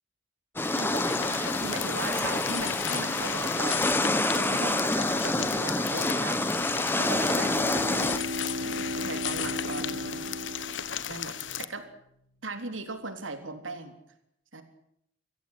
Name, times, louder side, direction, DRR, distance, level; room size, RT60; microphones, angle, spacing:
sound 1, 0.6-11.6, left 9 dB, 65° left, 1.2 m, -35 dB
sound 2, 0.6-8.2, left 2 dB, 10° left, 1.3 m, -27 dB
voice 1, 0.8-6.5 7.0-8.1 8.6-10.5 11.1-11.9 12.4-13.9 14.5-14.6, right 3 dB, 75° right, 8 dB, 3.6 m, -38 dB
Bowed string instrument, 6.9-11.5, left 1 dB, 50° right, 4.7 m, -36 dB
24.5 x 16.0 x 9.9 m, 0.75 s
head